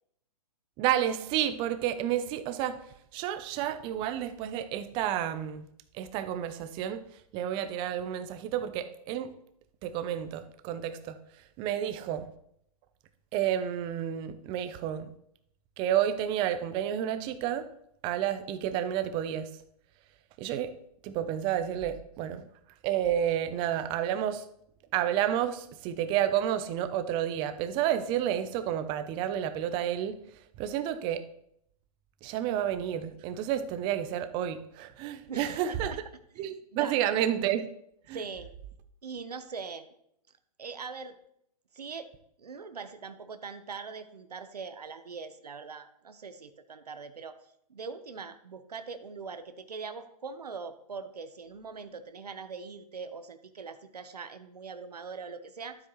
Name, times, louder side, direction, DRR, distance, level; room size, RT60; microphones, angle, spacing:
voice 1, 0.8-2.7 3.1-5.7 5.9-7.0 7.3-9.3 9.8-11.2 11.6-12.2 13.3-15.1 15.8-17.7 18.0-19.5 20.4-20.7 21.0-22.4 22.8-24.4 24.9-30.2 30.6-31.2 32.2-35.9 36.4-37.6 38.1-38.2, right 10 dB, 25° right, 10 dB, 0.7 m, -30 dB
voice 2, 35.3-36.0 36.4-37.2 38.1-38.5 39.0-39.9 40.6-41.2 41.7-42.1 42.4-47.4 47.7-55.8, right 5 dB, 90° right, 10 dB, 1.0 m, -42 dB
12.0 x 7.8 x 3.1 m, 0.72 s
hypercardioid pair, 140°, 20 cm